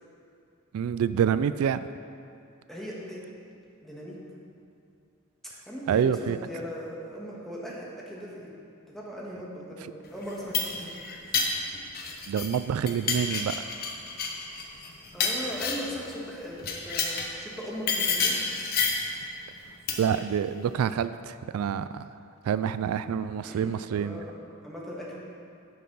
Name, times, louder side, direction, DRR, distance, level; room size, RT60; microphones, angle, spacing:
voice 1, 0.7-1.8 5.9-6.4 12.3-13.6 20.0-22.0 22.4-24.2, right 8 dB, 85° right, 14 dB, 0.3 m, -27 dB
voice 2, 2.7-3.2 3.8-4.2 5.4-8.5 8.9-11.5 15.1-18.4 23.4-25.2, equal, ahead, -5 dB, 1.7 m, -39 dB
sound 1, 10.2-12.6 12.9-16.0 16.6-17.3 17.9-19.1 19.9-20.2, left 5 dB, 45° left, 1.0 m, -29 dB
10.0 x 6.5 x 5.5 m, 2.5 s
head